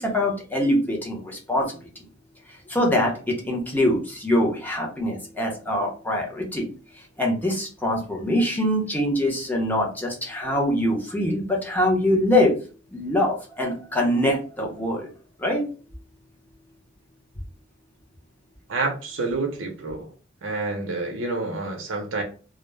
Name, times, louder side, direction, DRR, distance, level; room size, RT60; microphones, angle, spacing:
voice 1, 0.0-2.0 2.5-6.7 6.9-12.6 12.9-15.1 15.4-15.6, left 1 dB, 10° left, -1 dB, 0.6 m, -24 dB
voice 2, 18.7-20.1 20.4-22.2, right 3 dB, 85° right, 1 dB, 0.6 m, -28 dB
2.3 x 2.0 x 3.1 m, 0.37 s
head